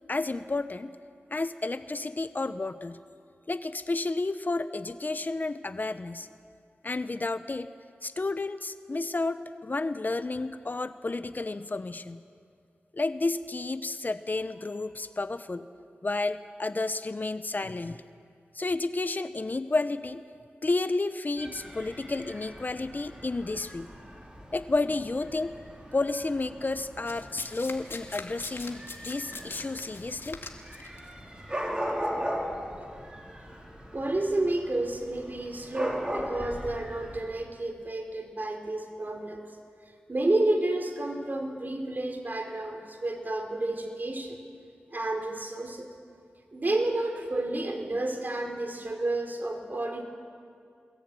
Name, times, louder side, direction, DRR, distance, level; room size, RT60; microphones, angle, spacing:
voice 1, 0.1-0.9 1.3-3.0 3.5-6.3 6.8-7.7 8.0-12.2 12.9-15.6 16.0-18.0 18.5-20.2 20.6-23.9 24.5-25.5 25.9-30.4, left 3 dB, 40° left, 11 dB, 1.0 m, -31 dB
Dog / Cat, 21.4-37.2, equal, 20° right, 4.9 m, -39 dB
Domestic sounds home sounds, 27.1-31.0 31.9-32.1, left 3 dB, 60° left, 2.5 m, -41 dB
voice 2, 33.9-39.4 40.1-44.4 44.9-45.9 46.5-50.0, right 2 dB, 45° right, 4 dB, 4.1 m, -30 dB
22.0 x 21.0 x 9.2 m, 2.3 s
cardioid pair, 50°, 4 cm